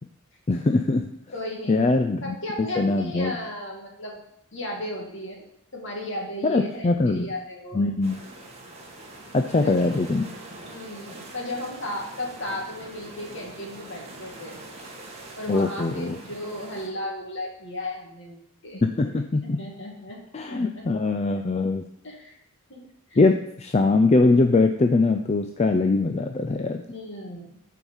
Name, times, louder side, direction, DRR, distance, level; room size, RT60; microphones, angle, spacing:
voice 1, 0.5-1.1 1.7-2.4 2.8-3.4 6.4-7.3 7.7-8.2 9.3-10.2 15.5-16.2 18.8-19.6 20.3-21.8 23.2-26.8, left 3 dB, 30° left, 6 dB, 0.3 m, -22 dB
voice 2, 1.3-1.9 2.2-4.2 4.5-5.4 5.7-7.9 9.5-9.7 10.7-14.6 15.4-19.2 19.6-20.2 20.5-20.6 22.0-22.4 22.7-22.8 23.1-23.2 26.9-27.6, left 1 dB, 55° left, -1 dB, 2.1 m, -35 dB
sound 1, 8.0-16.9, right 2 dB, 30° right, 1.3 m, -43 dB
8.8 x 4.7 x 5.5 m, 0.75 s
head